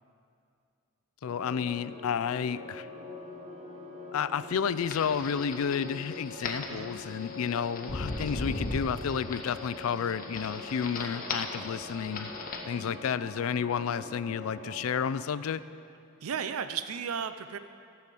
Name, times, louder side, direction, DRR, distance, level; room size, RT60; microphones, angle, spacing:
voice 1, 1.2-2.9 4.1-12.3 12.7-15.6, left 7 dB, 75° left, 15 dB, 0.4 m, -31 dB
sound 1, 1.2-15.0, left 2 dB, 35° right, 1.2 m, -44 dB
sound 2, 4.8-12.6, left 3 dB, 40° left, 1.0 m, -38 dB
voice 2, 16.2-17.6, right 7 dB, 80° right, 11 dB, 0.5 m, -34 dB
15.5 x 5.7 x 7.5 m, 2.5 s
head